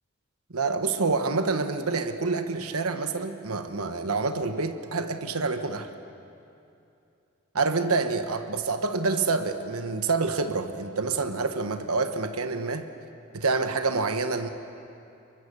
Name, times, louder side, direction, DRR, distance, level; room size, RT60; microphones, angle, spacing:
voice 1, 0.5-5.9 7.5-12.9 13.3-14.5, right 4 dB, 85° right, 7 dB, 1.3 m, -27 dB
28.5 x 23.0 x 6.8 m, 2.7 s
head